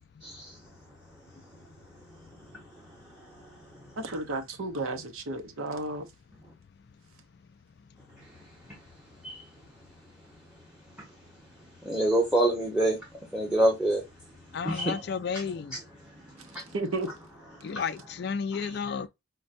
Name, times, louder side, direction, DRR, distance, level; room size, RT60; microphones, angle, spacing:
voice 1, 0.2-0.6 2.5-2.6 2.9-3.8 9.2-9.4 11.8-13.0 13.3-14.0 14.6-15.0 15.7-15.8 16.1-16.8 17.6-17.8 18.6-18.8, right 1 dB, 5° right, 1.0 m, -28 dB
voice 2, 4.0-6.1 16.7-17.1, right 2 dB, 85° right, 0.7 m, -32 dB
voice 3, 14.5-15.8 17.6-19.1, left 6 dB, 50° left, 0.3 m, -32 dB
5.2 x 2.2 x 2.5 m
head